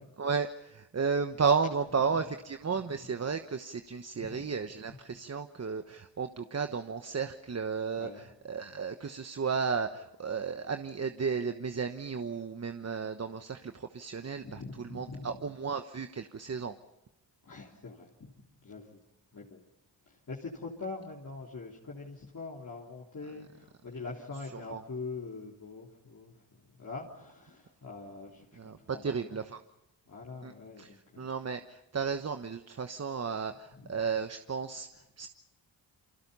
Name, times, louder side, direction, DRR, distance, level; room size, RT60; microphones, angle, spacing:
voice 1, 0.2-16.7 24.7-24.8 28.6-29.6 30.4-35.3, right 5 dB, 35° right, 7 dB, 1.2 m, -33 dB
voice 2, 8.0-8.3 14.4-15.3 17.4-18.3 18.6-19.0 19.3-19.7 20.1-29.4 30.1-31.3 33.8-33.9, left 3 dB, 40° left, -3 dB, 3.6 m, -44 dB
29.5 x 24.0 x 5.6 m, 0.89 s
cardioid pair, 75°, 44 cm